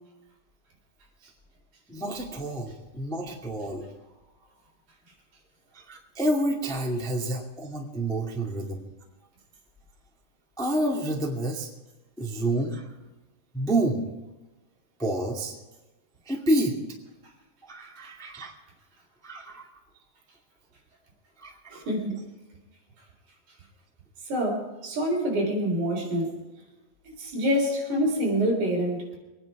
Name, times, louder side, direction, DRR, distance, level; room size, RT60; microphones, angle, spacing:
voice 1, 1.9-3.8 5.7-8.8 10.6-11.7 12.2-12.8 13.5-14.0 15.0-15.5 16.2-16.8 17.6-18.5 19.2-19.7 21.4-21.8, right 1 dB, 5° left, 0 dB, 0.4 m, -29 dB
voice 2, 21.7-22.2 24.3-26.4 27.2-29.1, equal, 50° right, 0 dB, 5.0 m, -26 dB
24.5 x 9.9 x 4.9 m, 1.1 s
omnidirectional pair, 4.7 m